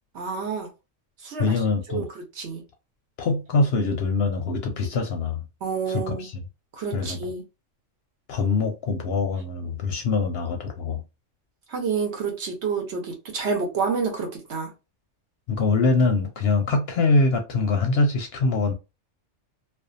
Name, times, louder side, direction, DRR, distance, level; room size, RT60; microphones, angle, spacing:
voice 1, 0.1-0.7 1.2-1.6 1.9-2.0 2.4-2.6 5.6-6.3 6.8-7.4 11.7-14.7, right 5 dB, 65° right, 1.1 m, -28 dB
voice 2, 1.4-2.1 3.2-5.4 5.9-6.5 6.9-7.3 8.3-11.0 15.5-18.7, left 3 dB, 65° left, 0.7 m, -23 dB
2.5 x 2.3 x 2.5 m
omnidirectional pair, 1.3 m